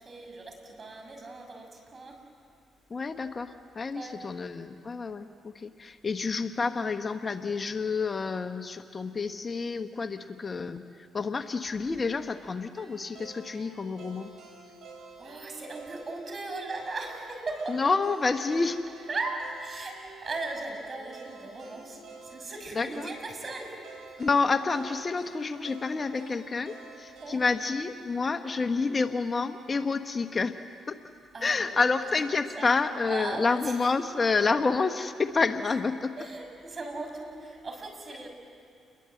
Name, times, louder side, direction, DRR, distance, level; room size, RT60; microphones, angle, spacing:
voice 1, 0.0-2.2 3.9-4.2 15.2-17.8 19.1-23.8 27.2-27.4 31.3-32.1 32.6-32.7 33.0-33.7 36.2-38.3, right 3 dB, 40° right, 3 dB, 6.3 m, -38 dB
voice 2, 2.9-10.8 11.1-14.3 17.7-18.8 22.7-22.9 24.2-30.6 30.9-31.0 31.4-36.2, left 4 dB, 35° left, 9 dB, 1.1 m, -29 dB
sound 1, 12.8-28.9, right 4 dB, 70° right, 7.5 m, -49 dB
29.0 x 22.0 x 7.8 m, 2.5 s
supercardioid pair, 70°, 0 cm